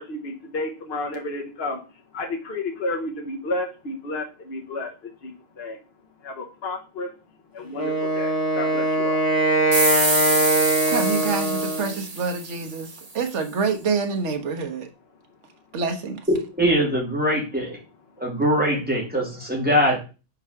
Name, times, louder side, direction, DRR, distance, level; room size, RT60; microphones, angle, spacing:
voice 1, 0.0-5.8 6.2-7.1 7.5-9.3, left 2 dB, 55° left, 1.2 m, -32 dB
Wind instrument woodwind instrument, 7.7-12.0, right 1 dB, 15° left, 2.0 m, -22 dB
sound 1, 9.7-13.0, right 2 dB, 30° right, 1.2 m, -26 dB
voice 2, 10.9-14.9 15.7-16.2, right 5 dB, 75° right, 1.4 m, -27 dB
voice 3, 16.6-17.8 18.2-20.0, equal, 5° right, 3.1 m, -22 dB
5.7 x 4.7 x 5.7 m
omnidirectional pair, 1.2 m